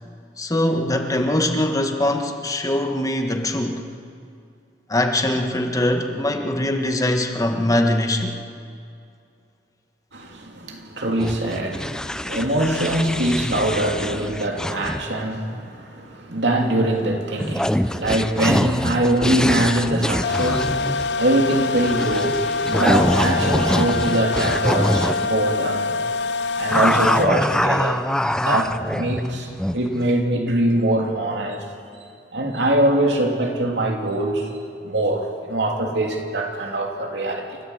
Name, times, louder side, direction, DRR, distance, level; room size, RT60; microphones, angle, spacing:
voice 1, 0.4-3.8 4.9-8.4, left 1 dB, 20° left, 4 dB, 1.5 m, -22 dB
voice 2, 10.1-20.8 21.2-25.9 26.6-31.6 32.3-34.5 34.8-37.6, right 1 dB, 80° right, 1 dB, 3.1 m, -23 dB
sound 1, 11.2-15.2 17.4-25.3 26.7-29.9, left 1 dB, 5° left, 0.6 m, -24 dB
sound 2, 20.2-27.3, left 4 dB, 75° left, 0.8 m, -25 dB
29.0 x 14.0 x 8.1 m, 2.5 s
head